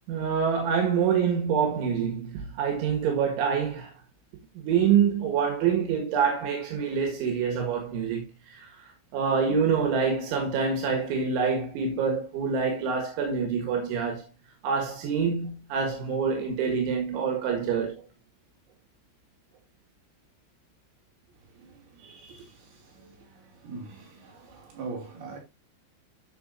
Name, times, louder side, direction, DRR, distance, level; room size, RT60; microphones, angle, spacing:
voice 1, 0.1-3.9 4.6-8.2 8.5-8.7 9.1-14.2 14.6-18.0 22.0-22.2, right 6 dB, 85° right, 4.1 m, -26 dB
voice 2, 21.3-25.4, right 4 dB, 60° right, 4.8 m, -43 dB
13.0 x 5.8 x 2.6 m
omnidirectional pair, 5.3 m